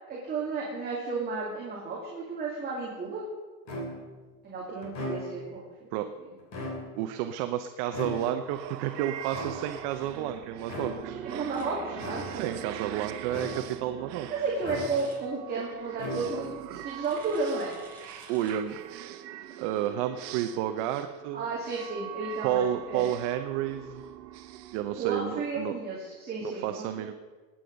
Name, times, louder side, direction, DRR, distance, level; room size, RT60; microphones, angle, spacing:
voice 1, 0.1-3.2 4.4-5.9 11.2-12.6 14.3-17.8 21.3-23.1 25.0-26.9, right 4 dB, 20° right, -4 dB, 2.4 m, -33 dB
sound 1, 3.7-4.2 4.8-5.6 6.4-7.2 7.9-8.6 9.3-10.0 10.6-11.2 12.0-12.6 13.3-13.9 14.6-15.3 15.9-16.7, left 1 dB, 30° left, 3.1 m, -38 dB
voice 2, 7.0-11.2 12.4-14.3 18.3-18.8 19.6-21.4 22.4-24.0 24.7-25.7 26.4-27.1, right 11 dB, 45° right, 8 dB, 0.7 m, -31 dB
sound 2, 8.0-25.6, right 12 dB, 75° right, 1.2 m, -42 dB
sound 3, 11.5-11.6 14.9-15.1 17.0-18.5, right 2 dB, 5° left, 3.9 m, -51 dB
20.5 x 8.8 x 5.2 m, 1.3 s
supercardioid pair, 160°, 50 cm